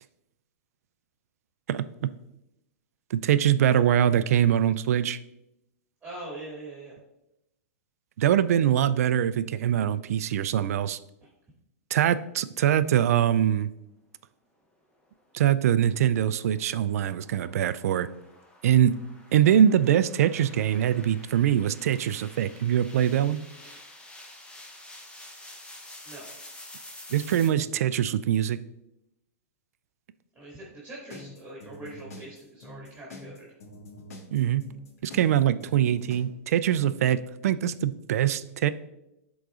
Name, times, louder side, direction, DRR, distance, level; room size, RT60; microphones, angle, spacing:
voice 1, 1.7-2.1 3.1-5.2 8.2-11.0 11.9-13.7 15.3-18.1 18.6-19.0 19.3-23.4 27.1-28.6 34.3-34.6 35.0-38.7, right 10 dB, 70° right, 14 dB, 0.3 m, -23 dB
voice 2, 6.0-7.0 11.2-11.3 23.6-23.8 26.0-26.3 30.4-33.5, right 2 dB, 10° right, -5 dB, 2.0 m, -42 dB
sound 1, 15.4-27.5, left 1 dB, 10° left, 0.9 m, -49 dB
sound 2, 31.1-36.2, left 2 dB, 75° left, 1.4 m, -45 dB
11.5 x 4.0 x 2.4 m, 0.88 s
hypercardioid pair, 125°, 8 cm